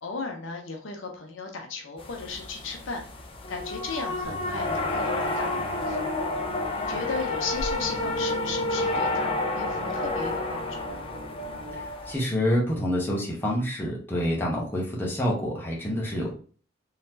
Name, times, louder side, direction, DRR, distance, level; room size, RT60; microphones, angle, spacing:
voice 1, 0.0-3.0 3.5-6.1 6.7-11.0, left 4 dB, 65° left, 3 dB, 0.7 m, -36 dB
sound 1, 2.0-12.1, left 2 dB, 25° left, 0.5 m, -30 dB
sound 2, 4.2-11.8, equal, 75° right, 1.8 m, -41 dB
voice 2, 11.7-16.3, equal, 10° left, -4 dB, 1.0 m, -27 dB
4.0 x 3.1 x 2.7 m, 0.43 s
head